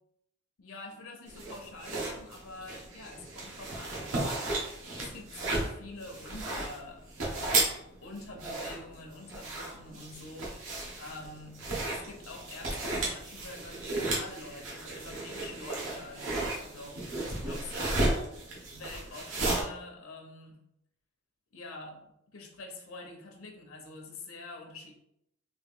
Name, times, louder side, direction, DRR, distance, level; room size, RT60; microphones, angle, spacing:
voice 1, 0.6-4.4 4.9-7.0 7.4-7.7 8.0-11.6 11.9-18.2 18.7-20.6 21.5-25.0, left 2 dB, 75° left, 2 dB, 0.7 m, -46 dB
sound 1, 1.3-19.6, right 2 dB, 70° right, 1.0 m, -34 dB
3.5 x 2.6 x 3.5 m, 0.79 s
head